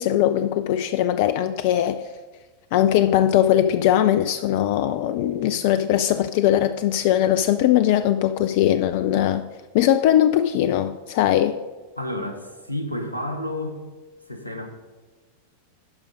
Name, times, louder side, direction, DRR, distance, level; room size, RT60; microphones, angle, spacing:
voice 1, 0.0-2.0 2.7-9.5 9.7-11.6, left 11 dB, 50° left, 0.3 m, -20 dB
voice 2, 12.0-13.8 14.3-14.7, left 1 dB, 90° left, 1.1 m, -30 dB
12.5 x 5.2 x 5.1 m
figure-of-eight pair, 90°, 0 cm